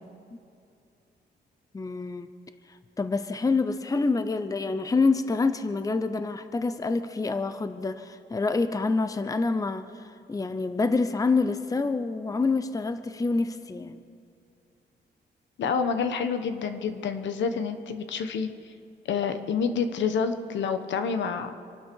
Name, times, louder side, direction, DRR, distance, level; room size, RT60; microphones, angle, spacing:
voice 1, 1.7-2.3 3.0-14.0, left 3 dB, 20° left, 11 dB, 0.7 m, -27 dB
voice 2, 15.6-18.5 19.1-21.5, left 6 dB, 90° left, 9 dB, 1.2 m, -28 dB
26.0 x 12.0 x 4.7 m, 2.5 s
cardioid pair, 120°, 18 cm